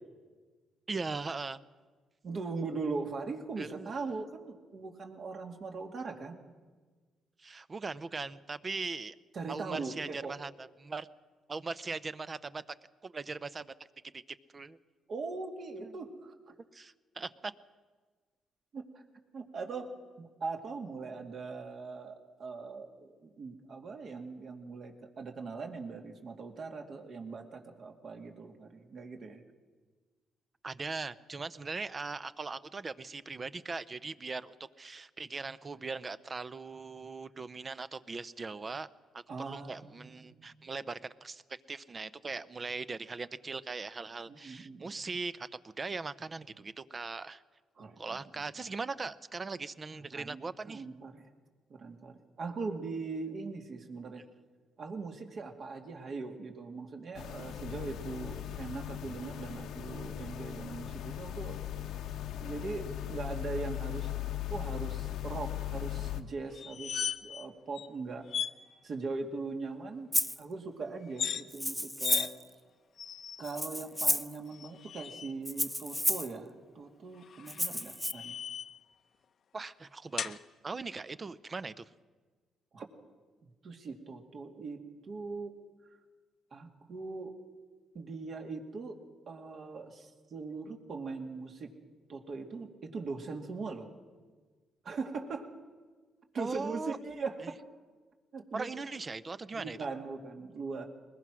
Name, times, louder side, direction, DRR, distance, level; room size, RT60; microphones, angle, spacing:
voice 1, 0.9-1.6 3.6-3.9 7.4-9.1 9.5-11.1 11.5-12.6 13.0-13.7 14.1-14.2 14.5-14.8 15.8-15.9 16.7-17.5 30.6-38.9 39.1-41.4 41.7-47.4 48.0-50.8 79.5-80.4 80.6-81.8 96.4-97.0 97.4-97.5 98.5-99.8, right 4 dB, 30° right, 15 dB, 0.7 m, -40 dB
voice 2, 2.2-6.3 9.3-10.4 15.1-16.3 18.7-18.9 19.3-19.9 20.2-29.4 39.3-40.7 44.3-44.9 47.8-48.5 50.1-51.2 51.7-54.2 54.8-61.6 62.4-64.1 64.5-68.3 68.8-70.1 70.4-72.3 73.4-78.3 82.7-82.9 83.6-84.8 85.1-85.5 86.5-87.3 87.9-89.0 89.3-91.7 92.1-93.9 94.8-95.5 96.3-97.6 98.3-98.7 99.5-100.8, right 4 dB, 55° right, 3 dB, 2.5 m, -40 dB
sound 1, 57.1-66.2, left 12 dB, 80° left, 1.0 m, -38 dB
sound 2, 66.5-67.5 67.7-67.9 68.3-68.6 71.0-71.4 72.0-72.3 73.0-73.6 74.5-75.3 77.2-78.8 80.2-80.4, left 8 dB, 55° left, 0.7 m, -37 dB
Rattle (instrument), 70.1-70.4 71.5-72.4 73.4-74.4 75.4-76.3 77.5-78.1, equal, 5° left, 0.6 m, -31 dB
21.0 x 21.0 x 6.3 m, 1.4 s
cardioid pair, 90°, 0 cm